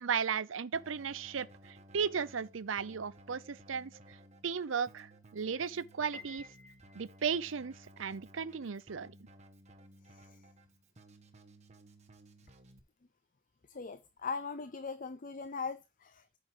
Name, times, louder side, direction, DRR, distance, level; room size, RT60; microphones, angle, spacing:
voice 1, 0.0-3.9 4.4-6.5 6.9-9.1, right 6 dB, 85° right, 0.6 m, -35 dB
Keyboard (musical), 0.7-12.8, right 1 dB, 35° right, 1.5 m, -58 dB
Piano, 6.1-7.4, left 3 dB, 5° left, 2.0 m, -52 dB
voice 2, 13.7-16.4, left 5 dB, 45° left, 0.6 m, -40 dB
9.3 x 6.0 x 4.8 m
head